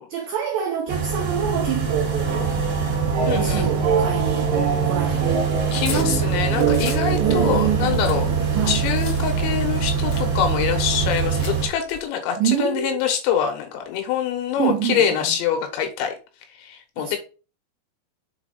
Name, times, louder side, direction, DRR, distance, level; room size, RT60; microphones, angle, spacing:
voice 1, 0.1-2.6 3.3-4.5 4.8-5.4 7.2-8.0 8.5-8.8 12.4-13.0 14.6-15.3 17.0-17.2, right 9 dB, 90° right, 2.0 m, -26 dB
sound 1, 0.9-11.7, right 6 dB, 45° right, 1.7 m, -24 dB
sound 2, 2.3-9.7, right 6 dB, 75° right, 1.7 m, -26 dB
voice 2, 3.3-3.7 5.7-8.3 8.7-16.1 16.6-17.2, left 8 dB, 85° left, 3.4 m, -25 dB
sound 3, 5.6-7.0 7.5-9.2 9.8-9.9 10.1-10.3 11.1-12.0, left 5 dB, 60° left, 1.6 m, -37 dB
7.0 x 4.3 x 4.0 m
omnidirectional pair, 5.1 m